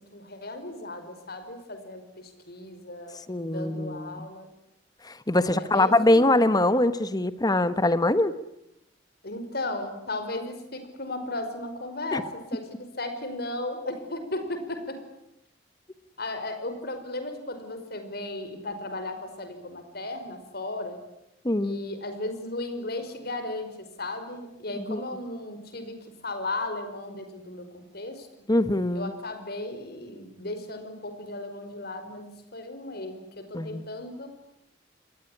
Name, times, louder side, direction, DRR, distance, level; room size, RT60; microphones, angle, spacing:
voice 1, 0.1-3.2 3.5-4.5 5.3-6.4 9.2-15.0 16.2-21.0 21.6-26.0 26.2-28.3 28.9-34.3, left 2 dB, 60° left, 8 dB, 5.1 m, -35 dB
voice 2, 3.3-4.2 5.0-8.3 12.1-12.2 21.4-21.8 24.8-25.0 28.5-29.1 33.5-33.8, left 1 dB, 20° left, 13 dB, 1.2 m, -23 dB
28.0 x 21.0 x 10.0 m, 0.83 s
head